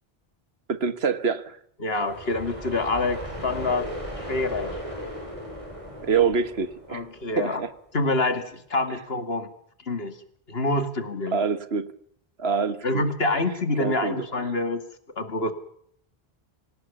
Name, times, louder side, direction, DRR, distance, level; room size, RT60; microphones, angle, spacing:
voice 1, 0.7-1.6 6.0-7.0 7.4-7.7 11.3-11.9 12.4-13.0 13.8-14.3, right 6 dB, 80° right, 12 dB, 1.6 m, -25 dB
voice 2, 1.8-4.8 6.9-7.6 7.9-9.5 9.8-10.2 10.5-11.4 12.8-14.8 15.2-15.5, left 2 dB, 70° left, 9 dB, 2.4 m, -26 dB
sound 1, 1.9-7.7, equal, 30° right, 5.4 m, -37 dB
25.5 x 17.5 x 7.1 m, 0.67 s
omnidirectional pair, 1.0 m